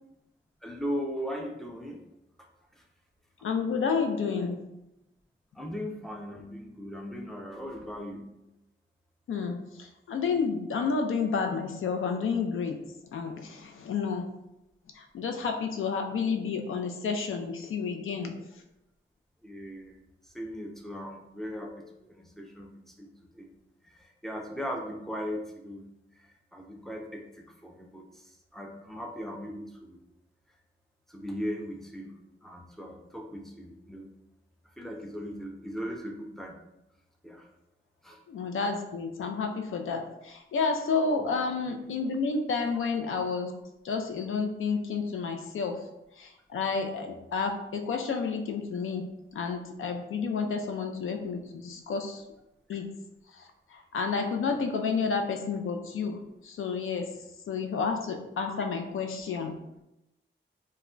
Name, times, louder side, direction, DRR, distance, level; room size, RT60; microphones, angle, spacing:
voice 1, 0.6-2.0 2.7-2.8 5.5-8.3 19.4-20.0 20.2-23.1 23.3-23.5 23.8-25.8 26.1-30.0 31.1-32.1 32.4-34.1 34.8-36.5 37.2-37.5 38.0-38.2 41.2-41.3, equal, ahead, 1 dB, 0.4 m, -38 dB
voice 2, 3.4-4.6 9.3-12.8 13.1-14.3 14.9-18.6 38.3-43.5 43.8-45.9 46.1-52.2 52.7-52.9 53.3-57.1 57.5-59.5, left 5 dB, 85° left, 5 dB, 0.4 m, -30 dB
2.2 x 2.1 x 3.7 m, 0.89 s
wide cardioid pair, 110°, 21 cm